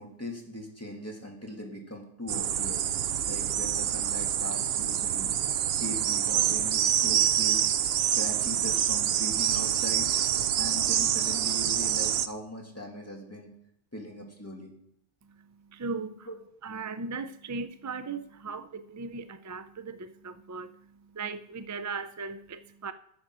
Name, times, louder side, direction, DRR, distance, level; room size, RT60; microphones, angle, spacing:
voice 1, 0.0-2.8 3.3-5.3 5.8-7.7 8.0-10.1 10.6-13.5 13.9-14.7 16.3-16.4 18.5-18.6, left 1 dB, 15° left, 2.3 m, -40 dB
sound 1, 2.3-12.3, right 10 dB, 75° right, 0.8 m, -26 dB
voice 2, 15.2-16.3 16.6-22.9, right 4 dB, 30° right, 0.3 m, -38 dB
9.5 x 8.8 x 6.0 m
omnidirectional pair, 1.0 m